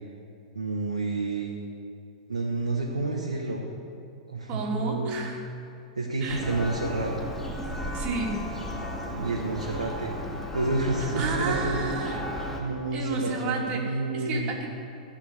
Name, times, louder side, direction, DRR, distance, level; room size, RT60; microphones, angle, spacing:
voice 1, 0.5-1.5 2.3-3.6 4.3-5.4 6.0-7.1 9.1-10.1 10.5-11.9 12.6-14.5, right 2 dB, 85° right, -3 dB, 1.4 m, -29 dB
voice 2, 4.5-5.4 6.2-6.4 7.9-8.4 11.0-12.2 12.9-14.7, right 4 dB, 35° right, -1 dB, 2.7 m, -31 dB
Church bell, 6.3-12.6, equal, 10° left, 1.8 m, -34 dB
16.0 x 5.8 x 7.3 m, 2.5 s
figure-of-eight pair, 100°, 4 cm